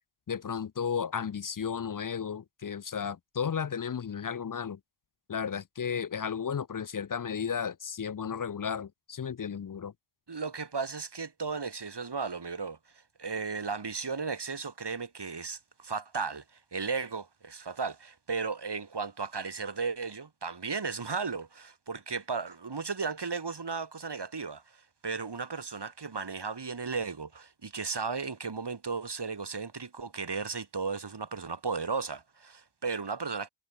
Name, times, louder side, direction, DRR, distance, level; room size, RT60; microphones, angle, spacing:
voice 1, 0.3-4.8 5.3-9.9, left 7 dB, 40° left, 0.6 m, -34 dB
voice 2, 10.3-33.5, right 4 dB, 55° right, 3.3 m, -35 dB
cardioid pair, 55°, 50 cm